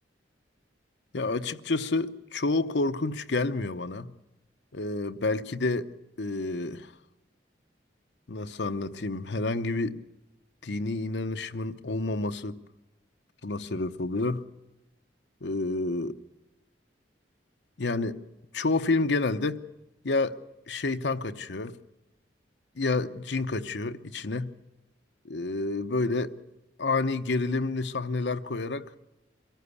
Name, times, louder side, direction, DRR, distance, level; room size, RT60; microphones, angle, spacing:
voice 1, 1.1-4.1 4.7-5.9 6.2-6.9 8.3-10.0 10.6-12.6 13.4-14.4 15.4-16.2 17.8-18.2 18.5-19.6 20.0-20.4 20.7-21.7 22.8-24.5 25.2-26.3 26.8-29.0, left 3 dB, 70° left, 0.9 m, -29 dB
23.5 x 15.0 x 8.3 m
head